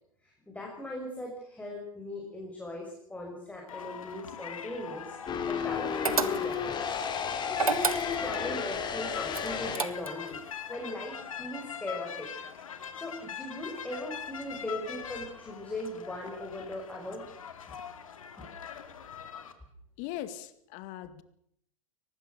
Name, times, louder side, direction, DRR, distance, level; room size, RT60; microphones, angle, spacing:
voice 1, 0.2-12.3 12.9-17.2, left 1 dB, 10° left, -1 dB, 6.2 m, -39 dB
sound 1, 3.7-19.5, left 8 dB, 75° left, 2.5 m, -42 dB
sound 2, 5.3-9.8, left 7 dB, 25° left, 3.4 m, -33 dB
sound 3, 6.0-6.7 7.5-8.4 9.3-10.3, right 5 dB, 85° right, 1.6 m, -30 dB
voice 2, 20.0-21.2, left 12 dB, 45° left, 13 dB, 2.1 m, -40 dB
23.5 x 19.5 x 6.7 m, 0.72 s
hypercardioid pair, 100°, 18 cm